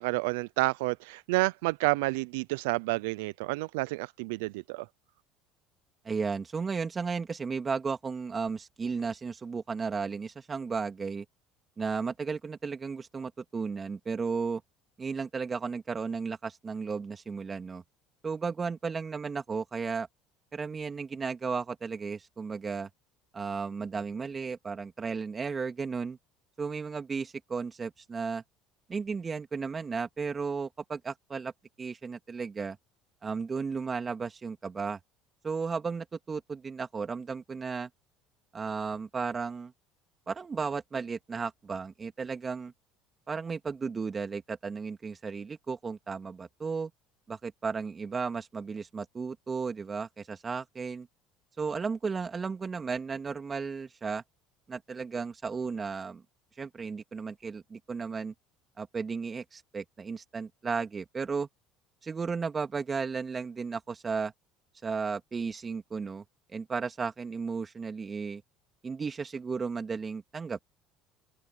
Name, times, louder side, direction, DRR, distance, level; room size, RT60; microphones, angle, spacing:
voice 1, 0.0-4.9, right 23 dB, 80° right, 0.5 m, -29 dB
voice 2, 6.0-11.2 11.8-14.6 15.0-17.8 18.2-20.1 20.5-22.9 23.3-26.2 26.6-28.4 28.9-31.5 31.8-32.8 33.2-35.0 35.4-37.9 38.5-39.7 40.3-42.7 43.3-46.9 47.3-51.1 51.6-54.2 54.7-56.2 56.6-58.3 58.8-61.5 62.0-64.3 64.8-66.2 66.5-68.4 68.8-70.6, right 5 dB, 30° right, 3.1 m, -34 dB
open air
hypercardioid pair, 80°, 0 cm